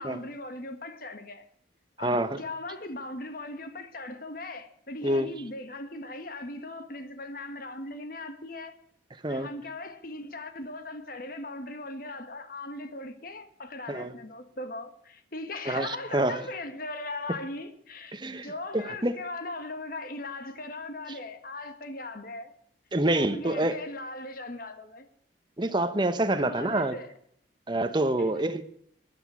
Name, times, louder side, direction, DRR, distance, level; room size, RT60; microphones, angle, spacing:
voice 1, 0.0-1.4 2.0-8.8 9.3-22.5 23.1-25.1 25.6-25.7 26.3-27.1 28.2-28.5, left 2 dB, 50° left, 1.6 m, -39 dB
voice 2, 2.0-2.4 5.0-5.3 9.2-9.5 13.9-14.1 15.7-16.4 18.1-19.2 21.1-21.2 22.9-23.8 25.6-27.0 27.7-28.6, right 1 dB, 25° right, 1.0 m, -27 dB
13.5 x 9.7 x 8.3 m
head